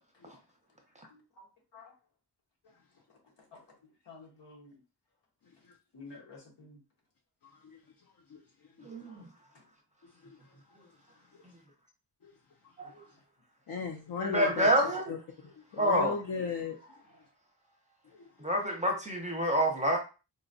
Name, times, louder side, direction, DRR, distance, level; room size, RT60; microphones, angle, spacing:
voice 1, 1.1-1.5 1.7-1.9 3.1-3.6 4.1-4.8 5.9-6.8 9.5-9.6, left 3 dB, 85° left, 1.1 m, -52 dB
voice 2, 8.8-9.1 12.8-12.9 14.2-15.1 15.8-16.2 18.4-20.0, equal, 15° right, 0.6 m, -27 dB
voice 3, 13.7-14.7 15.1-15.2 15.7-16.8 18.1-18.3, left 5 dB, 55° left, 0.5 m, -35 dB
3.9 x 2.2 x 2.6 m
wide cardioid pair, 125°, 41 cm